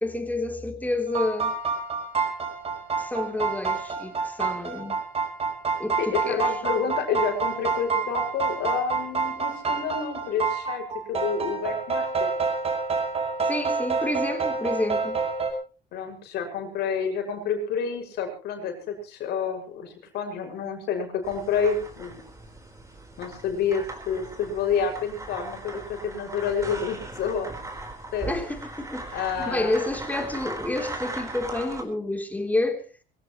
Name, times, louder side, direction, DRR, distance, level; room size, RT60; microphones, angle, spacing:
voice 1, 0.0-1.6 3.0-5.0 5.8-6.5 13.5-15.2 28.3-32.8, left 2 dB, 10° left, 3.5 m, -29 dB
sound 1, 1.1-15.5, right 5 dB, 35° right, 5.5 m, -28 dB
voice 2, 6.0-12.3 15.9-22.2 23.2-27.5 28.1-28.3 29.1-29.8, left 6 dB, 75° left, 6.3 m, -29 dB
sound 2, 21.2-31.8, right 2 dB, 20° right, 4.4 m, -39 dB
23.5 x 17.0 x 3.1 m
cardioid pair, 110°, 17 cm